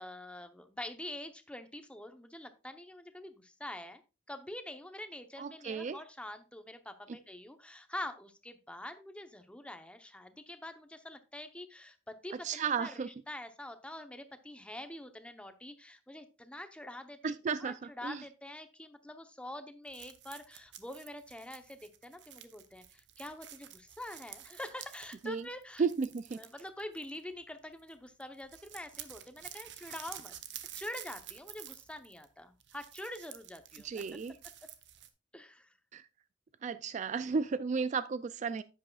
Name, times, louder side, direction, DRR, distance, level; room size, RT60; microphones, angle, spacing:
voice 1, 0.0-4.0 4.3-25.8 26.4-30.4 30.7-34.0 35.3-35.7, left 1 dB, 5° left, 0.8 m, -45 dB
voice 2, 5.4-6.0 12.4-13.1 17.2-17.8 18.0-18.2 25.2-25.4 25.8-26.4 33.8-34.3 35.9-36.0 36.6-38.6, right 5 dB, 40° right, 0.3 m, -33 dB
sound 1, 19.9-27.5 27.8-27.9 28.2-35.1, right 11 dB, 70° right, 0.8 m, -50 dB
10.5 x 8.4 x 2.3 m
head